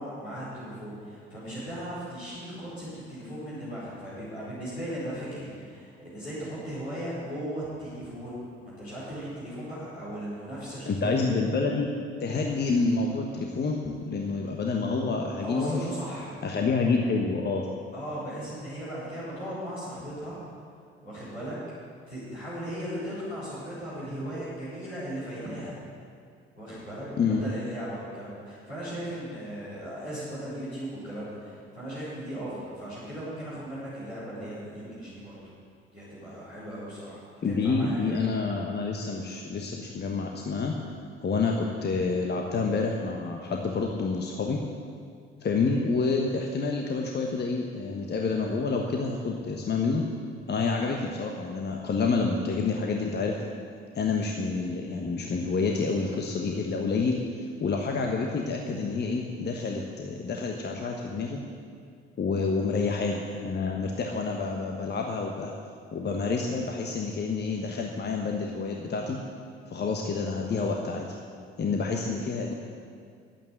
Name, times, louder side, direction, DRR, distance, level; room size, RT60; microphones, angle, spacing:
voice 1, 0.0-11.2 15.4-16.4 17.9-20.3 21.0-21.5 22.1-25.7 26.6-35.4 35.9-38.2 62.5-62.8, equal, 90° left, -10 dB, 4.2 m, -37 dB
voice 2, 10.9-11.9 12.2-15.9 16.4-17.7 27.2-27.4 37.4-40.7 41.2-44.6 45.4-50.0 50.5-53.3 53.9-61.4 62.2-65.5 65.9-69.2 69.7-71.1 71.6-72.5, left 4 dB, 35° left, 1 dB, 1.3 m, -28 dB
11.5 x 8.9 x 7.9 m, 2.3 s
figure-of-eight pair, 55°, 31 cm